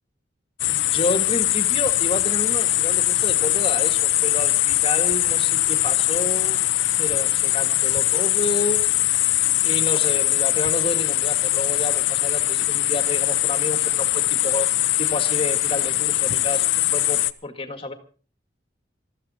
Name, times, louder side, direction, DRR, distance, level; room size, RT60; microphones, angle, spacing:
sound 1, 0.6-17.3, left 15 dB, 85° left, 0.8 m, -21 dB
voice 1, 0.7-6.6 7.0-8.8 9.6-14.7 15.0-17.9, left 2 dB, 30° left, 8 dB, 1.9 m, -30 dB
21.0 x 14.0 x 4.3 m, 0.38 s
head